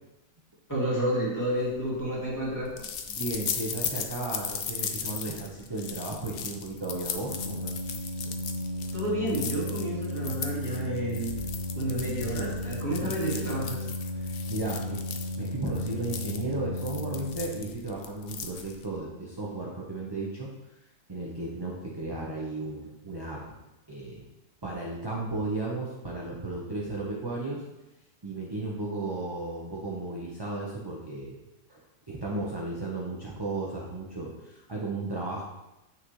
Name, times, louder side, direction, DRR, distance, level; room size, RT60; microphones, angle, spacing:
voice 1, 0.7-2.7 8.9-11.3 11.8-13.8, right 1 dB, 10° left, -7 dB, 2.4 m, -30 dB
sound 1, 1.6-19.0, left 7 dB, 70° left, 0.5 m, -38 dB
voice 2, 3.1-7.8 8.2-8.4 13.0-13.1 14.1-15.0 15.4-20.5 21.1-23.4 23.9-24.2 24.6-27.6 28.2-31.4 31.7-31.8 32.1-35.4, right 2 dB, 20° right, -4 dB, 0.7 m, -34 dB
Organ, 7.1-17.9, left 1 dB, 75° right, 1.5 m, -35 dB
7.8 x 6.4 x 3.2 m, 0.96 s
omnidirectional pair, 1.7 m